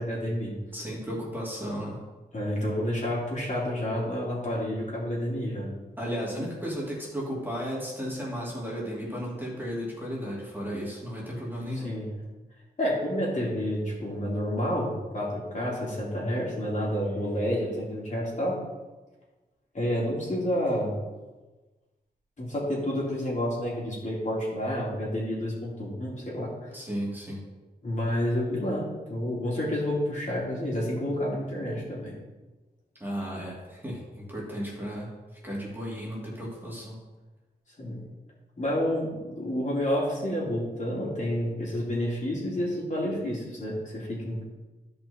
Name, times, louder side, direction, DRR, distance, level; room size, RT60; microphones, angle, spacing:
voice 1, 0.0-0.5 2.3-5.7 11.8-12.1 12.8-18.6 19.7-21.0 22.4-26.7 27.8-32.1 37.8-38.0 38.6-44.4, equal, 45° left, -6 dB, 3.0 m, -29 dB
voice 2, 0.7-2.0 6.0-11.9 26.7-27.4 33.0-35.2 35.4-37.0, equal, 10° right, -5 dB, 2.4 m, -34 dB
12.5 x 5.4 x 4.2 m, 1.2 s
wide cardioid pair, 130°, 17 cm